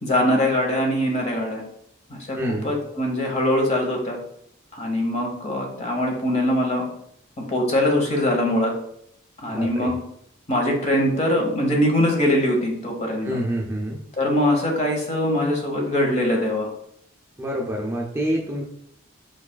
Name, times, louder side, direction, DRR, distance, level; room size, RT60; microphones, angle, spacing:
voice 1, 0.0-1.6 2.3-2.4 2.6-4.2 4.7-6.8 7.5-8.7 9.4-9.9 10.5-13.4 14.2-16.7, left 1 dB, 35° left, 1 dB, 1.0 m, -22 dB
voice 2, 2.4-2.7 9.5-9.9 13.2-14.0 17.4-18.6, equal, 15° right, -2 dB, 0.5 m, -27 dB
4.8 x 4.7 x 2.3 m, 0.71 s
head